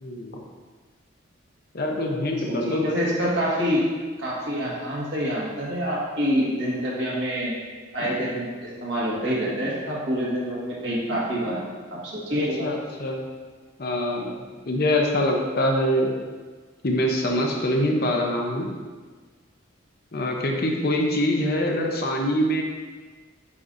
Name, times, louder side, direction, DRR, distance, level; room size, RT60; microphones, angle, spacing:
voice 1, 0.0-0.4 1.7-3.1 12.6-13.2 13.8-16.1 16.8-18.7 20.1-22.6, left 1 dB, 50° left, 1 dB, 0.8 m, -24 dB
voice 2, 2.5-3.8 4.2-7.5 7.9-11.6 11.9-12.7, equal, 60° right, -6 dB, 1.8 m, -26 dB
8.4 x 5.5 x 2.6 m, 1.4 s
head